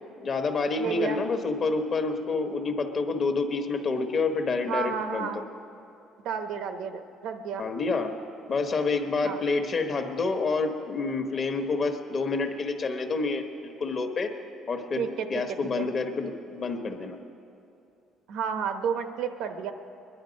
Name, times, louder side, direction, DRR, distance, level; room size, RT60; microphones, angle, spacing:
voice 1, 0.2-5.5 7.6-8.1 8.5-14.3 14.7-17.2, left 4 dB, 35° left, 5 dB, 1.1 m, -28 dB
voice 2, 0.8-1.2 4.7-5.4 6.2-7.6 9.2-9.4 15.0-15.3 15.8-15.9 18.3-19.7, right 7 dB, 75° right, 7 dB, 0.9 m, -31 dB
21.5 x 11.0 x 5.2 m, 2.7 s
cardioid pair, 160°, 0 cm